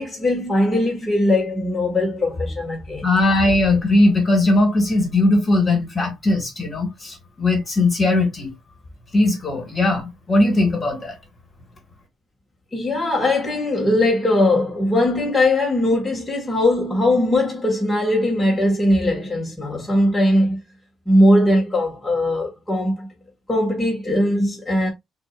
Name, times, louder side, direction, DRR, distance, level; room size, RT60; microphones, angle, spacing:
voice 1, 0.0-3.1 12.7-20.6 21.0-23.1 23.5-24.9, left 1 dB, 10° left, 1.6 m, -20 dB
voice 2, 3.0-8.5 9.1-11.2, left 2 dB, 30° left, 1.8 m, -19 dB
6.0 x 2.8 x 2.4 m
cardioid pair, 135°, 0 cm